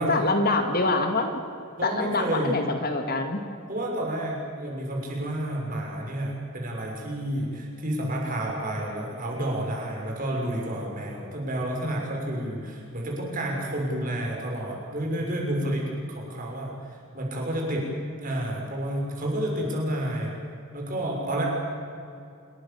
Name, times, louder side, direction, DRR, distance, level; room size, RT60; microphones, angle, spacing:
voice 1, 0.0-1.4 1.8-3.4, left 2 dB, 45° left, 6 dB, 2.2 m, -25 dB
voice 2, 1.8-2.6 3.7-17.9 18.2-20.3 20.7-21.4, right 1 dB, 40° right, -1 dB, 6.7 m, -30 dB
27.5 x 22.5 x 7.3 m, 2.6 s
head